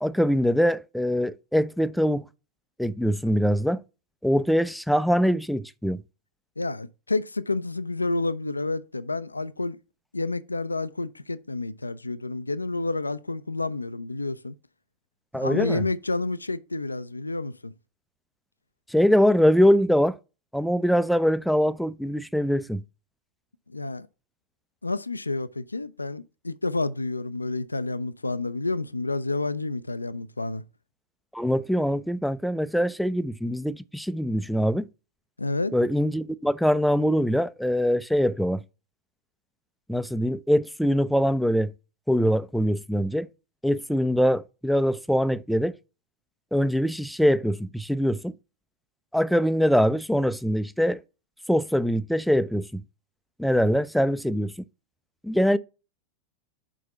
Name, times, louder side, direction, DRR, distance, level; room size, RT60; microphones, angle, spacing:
voice 1, 0.0-2.2 2.8-3.8 4.2-6.0 15.3-15.8 18.9-20.1 20.5-22.8 31.3-34.9 35.7-38.6 39.9-41.7 42.1-43.3 43.6-45.7 46.5-48.3 49.1-51.0 51.5-52.8 53.4-54.5 55.2-55.6, equal, ahead, 0.4 m, -23 dB
voice 2, 6.6-9.8 10.1-14.6 15.3-17.7 23.7-24.1 24.8-30.6 35.4-35.7, left 3 dB, 80° left, 0.3 m, -29 dB
6.0 x 4.9 x 5.7 m
figure-of-eight pair, 90°, 0 cm